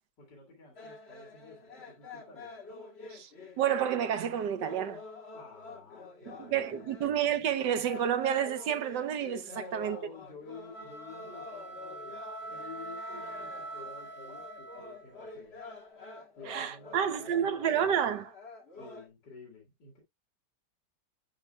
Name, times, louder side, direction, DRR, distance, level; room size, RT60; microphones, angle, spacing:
voice 1, 0.2-2.5 5.3-6.9 9.4-15.6 16.3-17.7 18.8-20.0, left 4 dB, 85° left, 2.9 m, -51 dB
sound 1, 0.8-19.1, left 3 dB, 40° left, 1.9 m, -48 dB
voice 2, 3.6-5.0 6.4-10.0 16.5-18.3, right 9 dB, 85° right, 1.5 m, -30 dB
sound 2, 10.7-15.2, right 2 dB, 5° left, 1.4 m, -43 dB
11.0 x 5.5 x 2.4 m
omnidirectional pair, 1.8 m